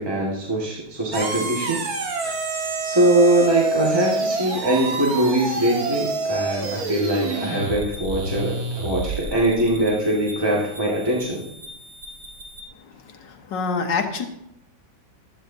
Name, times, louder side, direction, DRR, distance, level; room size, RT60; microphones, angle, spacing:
voice 1, 0.0-1.9 2.2-2.3 2.9-11.4, right 1 dB, 15° right, -5 dB, 1.7 m, -22 dB
sound 1, 1.1-12.6, right 3 dB, 55° right, 1.9 m, -29 dB
voice 2, 12.8-14.3, left 5 dB, 80° left, 5 dB, 1.8 m, -27 dB
15.5 x 12.0 x 2.7 m, 0.82 s
omnidirectional pair, 1.9 m